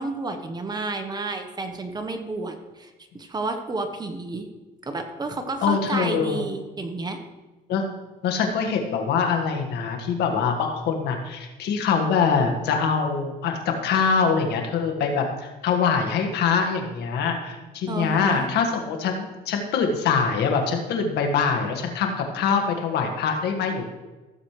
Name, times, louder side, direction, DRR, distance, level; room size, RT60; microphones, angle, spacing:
voice 1, 0.0-4.5 4.8-7.2 17.9-18.5, right 3 dB, 25° right, 6 dB, 1.2 m, -31 dB
voice 2, 5.6-6.4 7.7-7.8 8.2-23.8, left 5 dB, 75° left, 3 dB, 1.8 m, -24 dB
15.5 x 7.6 x 3.3 m, 1.2 s
cardioid pair, 110°, 17 cm